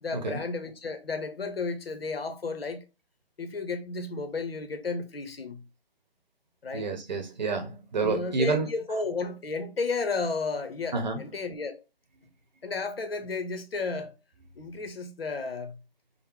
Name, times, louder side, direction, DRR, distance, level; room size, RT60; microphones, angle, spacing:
voice 1, 0.0-2.8 3.4-5.6 6.6-6.9 8.0-11.8 12.6-14.1 14.6-15.8, left 4 dB, 70° left, 0.9 m, -33 dB
voice 2, 6.7-8.7 10.9-11.2, right 4 dB, 45° right, 0.9 m, -29 dB
5.3 x 2.1 x 3.1 m
figure-of-eight pair, 155°, 31 cm